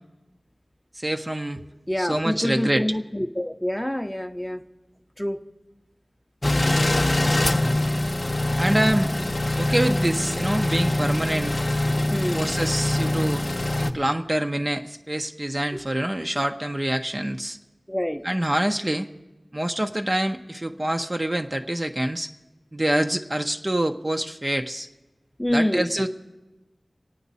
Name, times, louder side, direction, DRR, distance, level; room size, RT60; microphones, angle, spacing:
voice 1, 0.9-1.7 2.0-2.8 8.6-9.1 9.6-11.6 12.3-13.4 13.8-17.6 18.2-19.1 19.5-22.3 22.7-24.9 25.5-26.1, right 1 dB, 25° right, 5 dB, 0.7 m, -25 dB
voice 2, 1.9-4.6 5.2-5.4 12.1-12.5 15.7-15.8 17.9-18.2 25.4-25.9, left 1 dB, 5° left, 7 dB, 0.8 m, -26 dB
sound 1, 6.4-13.9, left 1 dB, 35° left, 0.8 m, -23 dB
26.5 x 9.1 x 4.1 m, 1.1 s
wide cardioid pair, 60°, 0 cm